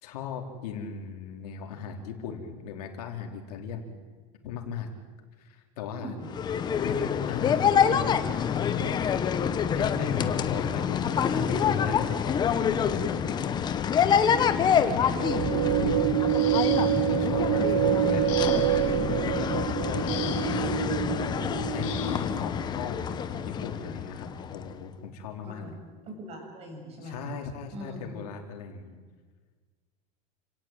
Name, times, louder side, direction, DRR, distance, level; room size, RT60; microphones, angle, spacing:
voice 1, 0.0-4.0 4.4-4.9 5.4-6.2 6.8-7.0 7.3-8.5 9.7-13.2 14.5-16.0 16.7-20.0 21.7-25.7 27.0-29.0, left 6 dB, 90° left, 3 dB, 4.4 m, -38 dB
voice 2, 5.9-6.3 25.4-25.8 26.1-27.4 27.7-28.1, equal, 30° right, 2 dB, 7.8 m, -42 dB
sound 1, 6.3-24.7, left 7 dB, 20° left, 1.1 m, -27 dB
sound 2, 15.1-22.5, right 13 dB, 70° right, 1.0 m, -27 dB
sound 3, 16.3-17.2 18.3-18.9 20.1-20.6 21.8-22.3 23.5-23.6 24.2-24.4, left 12 dB, 65° left, 3.1 m, -40 dB
29.5 x 18.0 x 9.2 m, 1.5 s
supercardioid pair, 160°, 19 cm